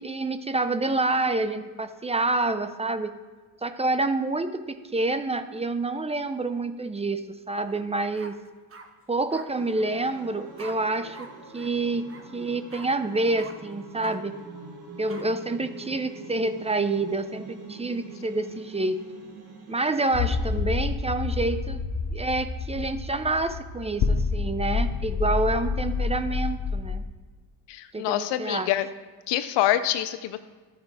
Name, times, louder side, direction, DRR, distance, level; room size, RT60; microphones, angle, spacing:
voice 1, 0.0-3.2 3.6-8.3 9.1-11.3 11.5-12.1 12.3-14.4 15.0-19.0 19.7-21.8 22.1-27.0 27.9-28.7, right 2 dB, 15° right, 10 dB, 0.6 m, -28 dB
sound 1, 7.7-7.8 8.2-8.9 9.3-9.5 10.6-10.7 11.1-11.3 11.5-11.7 12.1-12.2 12.7-12.9 13.4-13.5 14.0-14.2 15.1-15.2, right 3 dB, 35° right, 1.1 m, -44 dB
sound 2, 9.5-20.6, right 3 dB, 65° right, 1.7 m, -44 dB
sound 3, 20.1-27.0, left 5 dB, 55° left, 0.9 m, -28 dB
voice 2, 27.7-28.9 29.3-30.4, left 13 dB, 90° left, 12 dB, 0.6 m, -26 dB
12.0 x 5.0 x 4.8 m, 1.4 s
cardioid pair, 80°, 41 cm